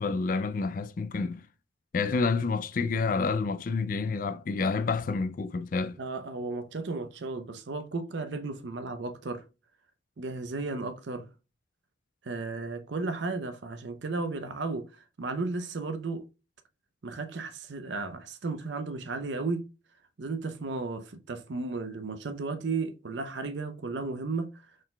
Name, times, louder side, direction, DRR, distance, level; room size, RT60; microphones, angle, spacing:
voice 1, 0.0-1.4 1.9-6.0, left 4 dB, 45° left, 0.3 m, -29 dB
voice 2, 6.0-9.4 10.2-11.3 12.2-16.2 17.0-19.6 20.2-24.5, right 3 dB, 65° right, 0.6 m, -34 dB
6.3 x 3.8 x 2.2 m
head